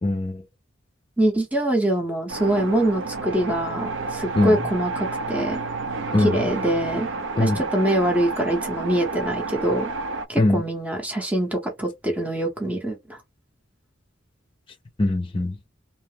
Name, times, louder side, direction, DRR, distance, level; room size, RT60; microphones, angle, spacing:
voice 1, 0.0-0.4 4.3-4.6 6.1-6.4 7.3-7.6 10.4-10.6 15.0-15.7, left 2 dB, 25° left, 0.4 m, -21 dB
voice 2, 1.2-5.6 6.2-7.1 7.4-9.9 10.3-13.2, right 1 dB, 10° right, 0.7 m, -24 dB
sound 1, 2.3-10.3, right 3 dB, 65° right, 0.4 m, -30 dB
2.8 x 2.0 x 3.1 m
head